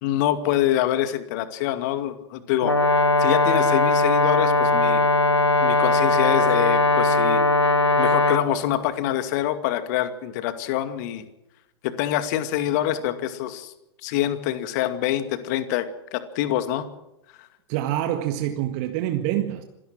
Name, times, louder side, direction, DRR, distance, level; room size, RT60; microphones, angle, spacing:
voice 1, 0.0-2.9 3.2-5.0 5.6-7.4 8.0-11.2 11.8-13.7 14.0-16.9 17.4-17.5, left 12 dB, 40° left, 2.3 m, -25 dB
Brass instrument, 2.6-8.5, left 2 dB, 85° left, 1.5 m, -19 dB
voice 2, 17.7-19.6, right 12 dB, 35° right, 1.8 m, -26 dB
26.5 x 17.5 x 6.2 m
figure-of-eight pair, 105°, 14 cm